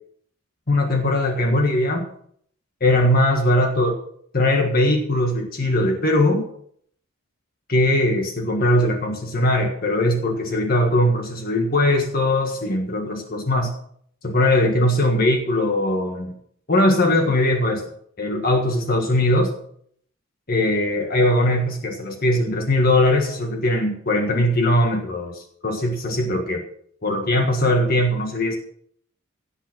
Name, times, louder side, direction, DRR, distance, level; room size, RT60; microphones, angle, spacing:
voice 1, 0.7-2.1 2.8-4.0 4.3-6.5 7.7-13.7 14.2-16.3 16.7-17.8 18.2-19.5 20.5-26.6 27.0-28.6, left 1 dB, 45° left, 3 dB, 1.6 m, -20 dB
17.0 x 5.7 x 7.3 m, 0.64 s
head